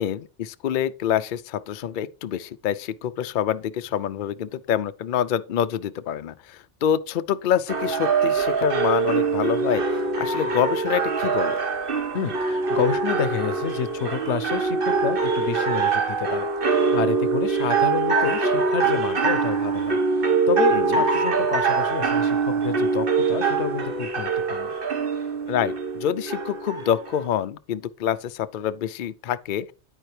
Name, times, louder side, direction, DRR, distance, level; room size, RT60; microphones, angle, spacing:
voice 1, 0.0-11.6 20.7-21.0 25.5-29.7, left 9 dB, 55° left, 0.6 m, -26 dB
sound 1, 7.7-27.3, right 4 dB, 55° right, 1.4 m, -23 dB
voice 2, 12.1-24.7, left 7 dB, 85° left, 1.1 m, -29 dB
10.0 x 9.0 x 3.3 m
omnidirectional pair, 1.1 m